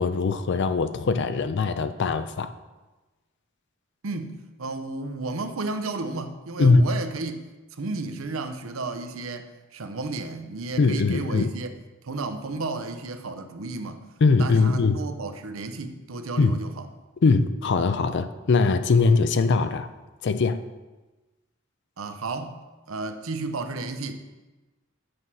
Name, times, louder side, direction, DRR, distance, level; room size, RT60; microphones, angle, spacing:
voice 1, 0.0-2.5 6.6-6.9 10.8-11.5 14.2-15.0 16.4-16.6 17.2-19.9 20.2-20.6, left 4 dB, 60° left, 11 dB, 0.5 m, -21 dB
voice 2, 4.0-7.4 7.7-11.7 12.0-14.0 14.4-16.9 22.0-22.6 22.9-24.2, right 3 dB, 85° right, 8 dB, 0.7 m, -32 dB
7.9 x 5.7 x 4.7 m, 1.2 s
head